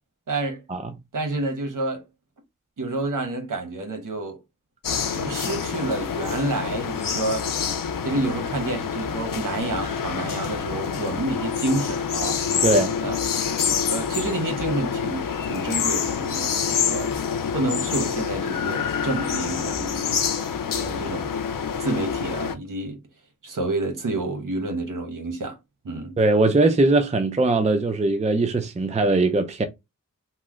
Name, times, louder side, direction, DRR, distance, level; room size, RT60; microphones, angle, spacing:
voice 1, 0.3-0.6 1.1-2.0 2.8-4.4 5.1-7.4 8.0-12.4 13.0-13.2 13.9-17.1 17.5-20.2 20.8-21.3 21.8-23.0 23.4-25.6 25.8-26.2, right 2 dB, 70° right, 0.9 m, -29 dB
sound 1, 4.8-22.5, left 7 dB, 85° left, 0.5 m, -27 dB
voice 2, 12.6-13.0 26.2-29.6, right 2 dB, 20° right, 0.5 m, -20 dB
3.0 x 2.0 x 3.5 m
cardioid pair, 40°, 33 cm